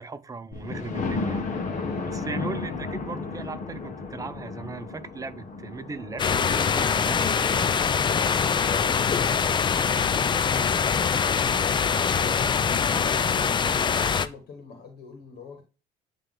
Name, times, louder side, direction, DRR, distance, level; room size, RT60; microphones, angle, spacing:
voice 1, 0.0-1.4 2.1-7.3, right 4 dB, 20° right, 0.6 m, -37 dB
Thunder, 0.5-10.2 10.8-10.9 11.3-11.4 11.7-11.8, left 3 dB, 50° left, 1.5 m, -35 dB
voice 2, 1.5-2.4 7.6-15.6, left 5 dB, 65° left, 1.9 m, -44 dB
sound 1, 6.2-14.3, left 6 dB, 30° left, 0.4 m, -23 dB
9.4 x 3.3 x 3.8 m
cardioid pair, 110°, 17 cm